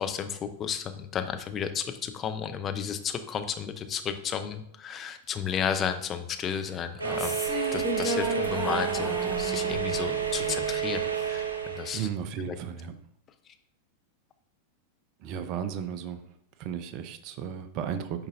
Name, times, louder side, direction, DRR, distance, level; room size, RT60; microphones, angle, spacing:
voice 1, 0.0-7.4 7.7-12.1 12.5-12.6, left 7 dB, 25° left, 8 dB, 0.6 m, -33 dB
sound 1, 6.9-11.4, equal, 5° left, 1.2 m, -35 dB
sound 2, 7.0-12.0, right 8 dB, 75° right, 0.8 m, -30 dB
voice 2, 11.9-13.0 15.2-16.2 16.6-18.3, right 8 dB, 40° right, 11 dB, 0.6 m, -34 dB
8.5 x 5.4 x 2.6 m, 0.71 s
figure-of-eight pair, 90°, 0 cm